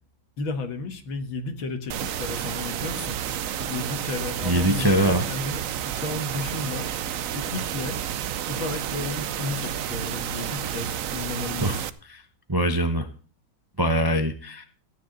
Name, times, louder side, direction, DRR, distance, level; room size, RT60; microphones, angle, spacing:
voice 1, 0.4-3.2 3.6-6.9 7.3-8.0 8.5-11.8, left 3 dB, 85° left, 7 dB, 2.3 m, -33 dB
sound 1, 1.9-11.9, right 10 dB, 70° right, 0.8 m, -30 dB
voice 2, 4.4-5.2 11.6-11.8 12.1-12.2 12.5-13.1 13.8-14.6, right 1 dB, 30° right, 7 dB, 0.4 m, -22 dB
14.5 x 9.8 x 3.9 m, 0.40 s
omnidirectional pair, 2.1 m